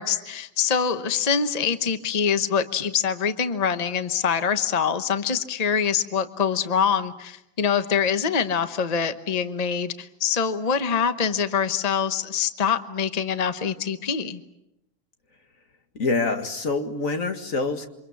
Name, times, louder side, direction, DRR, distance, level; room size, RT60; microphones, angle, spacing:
voice 1, 0.0-14.4, left 7 dB, 30° left, 10 dB, 1.1 m, -24 dB
voice 2, 16.0-17.9, left 3 dB, 75° left, 6 dB, 2.4 m, -26 dB
28.5 x 25.0 x 7.0 m, 0.87 s
omnidirectional pair, 1.4 m